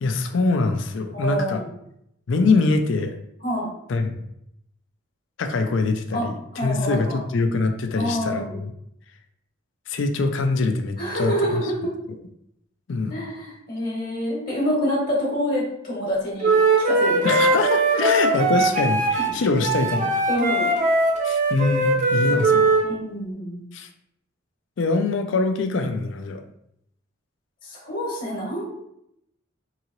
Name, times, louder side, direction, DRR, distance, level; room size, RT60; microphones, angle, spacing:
voice 1, 0.0-1.6 2.3-3.2 3.9-4.2 5.4-8.7 9.9-11.6 12.9-13.2 17.2-20.3 21.2-22.7 23.7-23.9 24.8-26.4, left 3 dB, 70° left, 6 dB, 0.4 m, -23 dB
voice 2, 1.1-1.7 3.4-3.7 6.1-6.3 6.5-7.2 8.0-8.6 11.0-11.9 13.1-17.6 19.2-19.3 20.3-20.8 22.8-23.7 27.6-28.6, equal, 45° left, -4 dB, 1.1 m, -27 dB
Wind instrument woodwind instrument, 16.4-22.9, right 2 dB, 35° right, 0.5 m, -20 dB
3.8 x 2.8 x 3.0 m, 0.75 s
head